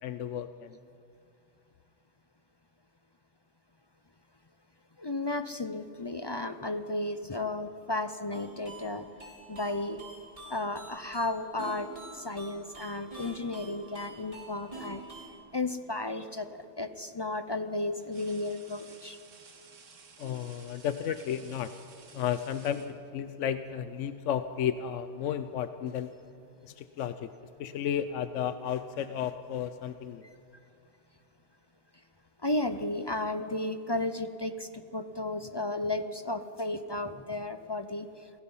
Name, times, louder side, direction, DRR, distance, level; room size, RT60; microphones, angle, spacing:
voice 1, 0.0-0.8 20.2-21.7 22.1-26.1 26.6-27.3 27.6-30.3, left 9 dB, 75° left, 11 dB, 1.0 m, -33 dB
voice 2, 5.0-9.1 9.5-10.0 10.5-11.9 12.1-15.0 15.5-19.2 32.4-38.1, left 2 dB, 35° left, 10 dB, 0.4 m, -33 dB
sound 1, 8.3-15.3, right 1 dB, 25° right, 3.3 m, -47 dB
sound 2, 14.2-14.6 16.3-16.5 18.0-23.5 24.7-24.9 25.3-26.0 26.3-26.7 27.5-30.1, right 5 dB, 75° right, 1.7 m, -57 dB
28.5 x 16.5 x 5.6 m, 2.6 s
omnidirectional pair, 1.3 m